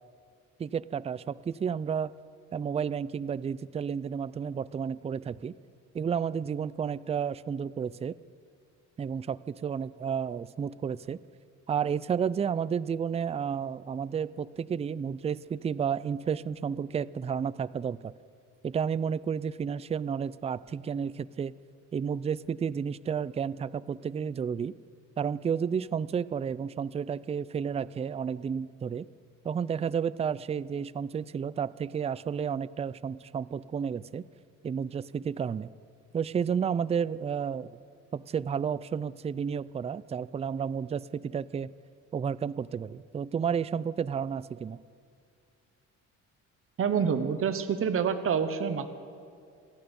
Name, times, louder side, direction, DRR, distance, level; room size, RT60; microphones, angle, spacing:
voice 1, 0.6-2.1 2.5-5.6 5.9-8.1 9.0-11.2 11.7-18.1 18.6-21.5 21.9-24.7 25.2-29.1 29.4-34.3 34.6-35.7 36.1-37.7 38.1-41.7 42.1-44.8, right 7 dB, 20° right, 18 dB, 0.3 m, -31 dB
voice 2, 46.8-48.9, right 7 dB, 45° right, 9 dB, 1.0 m, -27 dB
26.5 x 9.1 x 5.3 m, 2.4 s
cardioid pair, 90°, 30 cm